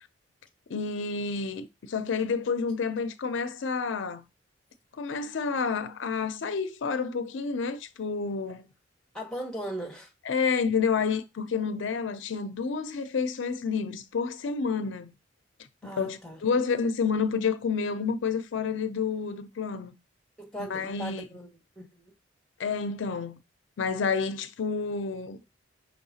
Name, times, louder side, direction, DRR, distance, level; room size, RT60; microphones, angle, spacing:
voice 1, 0.7-4.2 5.0-8.7 10.3-15.1 15.8-19.9 20.7-21.2 22.6-23.3 23.8-25.4, left 5 dB, 75° left, 0.4 m, -29 dB
voice 2, 9.1-10.1 15.8-16.4 20.4-22.1, equal, 5° left, 1.0 m, -38 dB
5.5 x 3.3 x 2.8 m
head